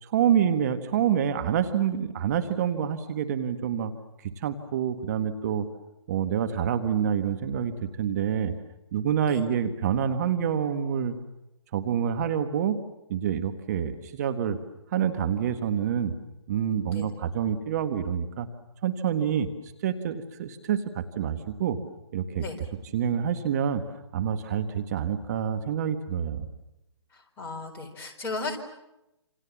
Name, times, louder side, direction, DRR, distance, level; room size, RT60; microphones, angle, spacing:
voice 1, 0.0-3.9 4.2-5.7 6.1-8.5 8.9-11.1 11.7-12.8 13.1-14.6 14.9-16.1 16.5-18.5 18.8-21.8 22.1-22.4 22.9-23.8 24.1-26.5, right 8 dB, 35° right, 7 dB, 1.7 m, -27 dB
voice 2, 27.4-28.6, left 3 dB, 15° left, 2 dB, 4.3 m, -34 dB
28.5 x 27.5 x 7.4 m, 0.90 s
figure-of-eight pair, 145°, 15 cm